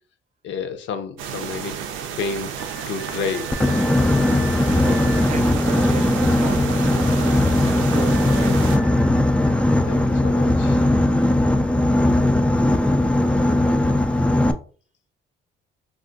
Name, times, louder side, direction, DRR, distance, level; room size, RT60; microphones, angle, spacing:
voice 1, 0.4-1.8 2.2-2.5 2.9-3.5 9.9-10.8, left 6 dB, 70° left, 0.6 m, -30 dB
sound 1, 1.2-8.8, right 8 dB, 85° right, 0.5 m, -31 dB
sound 2, 2.6-5.3 7.5-10.0, equal, 85° left, 1.0 m, -41 dB
Boat Water vehicle, 3.5-14.5, left 1 dB, 5° left, 0.3 m, -19 dB
voice 2, 4.3-9.1, right 5 dB, 35° right, 0.6 m, -35 dB
2.4 x 2.4 x 3.7 m
cardioid pair, 90°, 20 cm